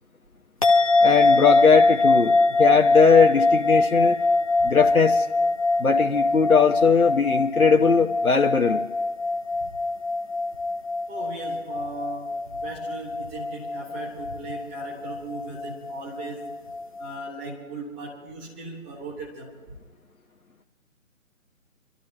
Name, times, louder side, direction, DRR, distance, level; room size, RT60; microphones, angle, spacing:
sound 1, 0.6-17.1, left 3 dB, 25° left, 0.7 m, -23 dB
voice 1, 1.0-4.2 4.6-5.3 5.8-8.8, left 5 dB, 90° left, 3 dB, 1.1 m, -19 dB
voice 2, 11.1-16.5 17.0-19.6, right 2 dB, 10° right, -2 dB, 1.5 m, -38 dB
28.5 x 12.5 x 2.9 m, 1.3 s
figure-of-eight pair, 155°, 42 cm